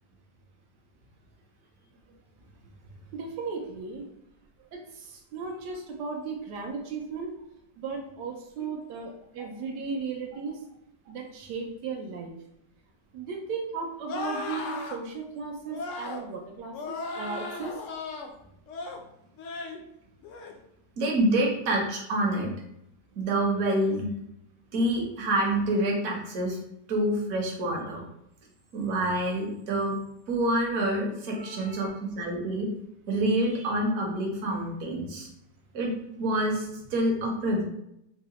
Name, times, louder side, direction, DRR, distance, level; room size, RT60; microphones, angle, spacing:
voice 1, 3.1-4.1 4.7-7.4 7.8-10.6 11.1-12.4 13.1-17.8 31.4-31.9, right 4 dB, 85° right, 1 dB, 1.2 m, -36 dB
sound 1, 14.1-15.0 15.7-16.2 16.7-18.3 18.7-19.0 19.4-19.8 20.2-20.5, left 3 dB, 70° left, 0.7 m, -36 dB
voice 2, 21.0-22.5 23.2-24.1 24.7-26.6 26.9-28.0 28.7-30.0 30.3-32.7 33.1-35.3 35.7-37.6, right 1 dB, 60° right, 0 dB, 1.2 m, -27 dB
4.5 x 2.0 x 2.9 m, 0.78 s
omnidirectional pair, 1.8 m